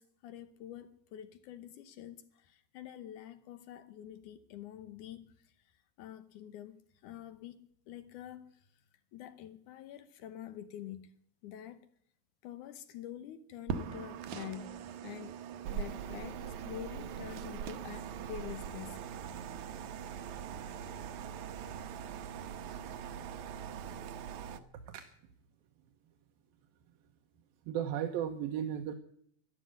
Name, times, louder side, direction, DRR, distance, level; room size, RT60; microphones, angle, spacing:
voice 1, 0.0-5.5 6.0-8.6 9.1-11.1 11.4-11.8 12.4-15.4 15.7-19.1, left 11 dB, 70° left, 2.2 m, -47 dB
sound 1, 13.7-24.6, right 8 dB, 70° right, 2.0 m, -41 dB
voice 2, 27.7-28.9, right 9 dB, 90° right, 2.8 m, -35 dB
12.0 x 11.5 x 9.0 m
omnidirectional pair, 4.1 m